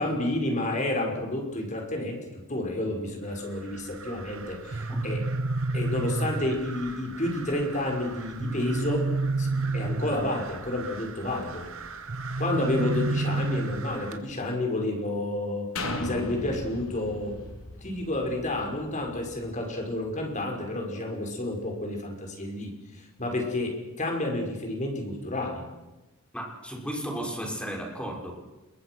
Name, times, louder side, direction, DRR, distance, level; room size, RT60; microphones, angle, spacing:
voice 1, 0.0-2.2 2.5-5.2 5.7-9.1 9.4-11.7 12.4-15.7 16.0-17.5 17.8-25.6, left 1 dB, 35° left, 2 dB, 5.7 m, -30 dB
sound 1, 3.2-14.2, right 5 dB, 75° right, 2.3 m, -43 dB
sound 2, 4.7-6.7 8.4-10.4 12.1-14.1, right 2 dB, 60° right, 0.8 m, -29 dB
sound 3, 15.8-19.5 20.1-20.2, left 1 dB, 80° left, 4.0 m, -36 dB
voice 2, 26.3-28.3, equal, 5° left, 0 dB, 6.0 m, -34 dB
28.0 x 22.5 x 6.3 m, 1.1 s
head